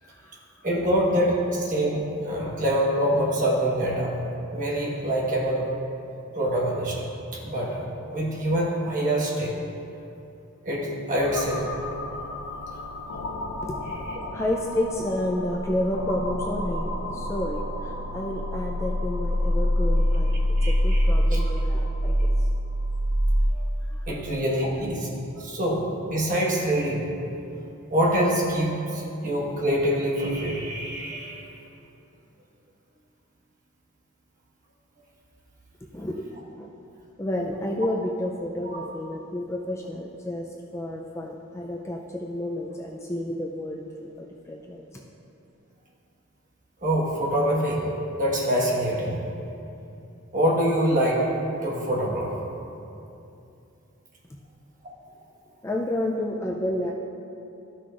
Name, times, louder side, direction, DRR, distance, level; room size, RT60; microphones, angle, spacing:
voice 1, 0.0-0.7 13.6-13.9 14.3-20.4 20.6-22.5 23.8-24.2 35.9-36.7 37.2-44.8 55.6-56.9, left 1 dB, 15° left, -1 dB, 0.3 m, -31 dB
voice 2, 0.6-4.2 4.5-5.6 6.3-7.0 7.3-9.5 10.6-11.6 20.6-21.0 21.3-21.5 23.5-23.6 24.1-25.1 25.4-27.0 27.9-31.4 38.6-38.8 46.8-47.9 48.2-49.2 50.3-51.2 51.6-52.3, equal, 40° right, -4 dB, 1.3 m, -25 dB
sound 1, 11.2-23.5, equal, 75° left, 0.6 m, -26 dB
12.5 x 5.9 x 2.4 m, 2.7 s
head